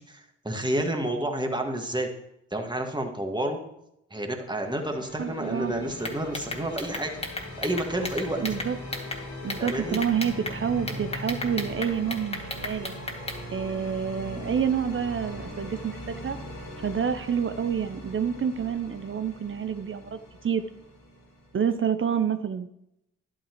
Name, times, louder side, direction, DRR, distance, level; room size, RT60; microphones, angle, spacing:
voice 1, 0.1-2.1 2.5-3.6 4.1-7.1 7.6-8.4 9.6-10.0, right 1 dB, 15° right, 3 dB, 1.8 m, -30 dB
sound 1, 4.1-21.9, left 1 dB, 75° left, 3.2 m, -40 dB
voice 2, 5.2-5.7 8.4-8.8 9.4-12.9 13.5-16.4 16.8-20.6 21.5-22.7, right 7 dB, 35° right, 11 dB, 0.7 m, -28 dB
sound 2, 6.0-9.2 9.5-10.6 10.9-13.4, left 2 dB, 15° left, 2.0 m, -34 dB
11.0 x 8.8 x 3.0 m, 0.81 s
hypercardioid pair, 40°, 34 cm